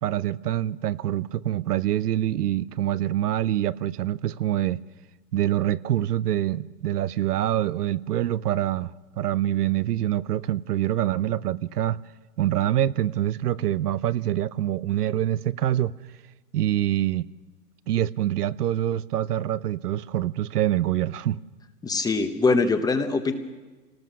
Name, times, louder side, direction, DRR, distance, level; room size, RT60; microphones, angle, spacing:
voice 1, 0.0-4.8 5.3-12.0 12.4-15.9 16.5-17.3 17.9-21.4, right 12 dB, 70° right, 0.8 m, -25 dB
voice 2, 21.8-23.3, left 3 dB, 10° left, 0.9 m, -22 dB
26.0 x 18.5 x 6.2 m
hypercardioid pair, 135°, 49 cm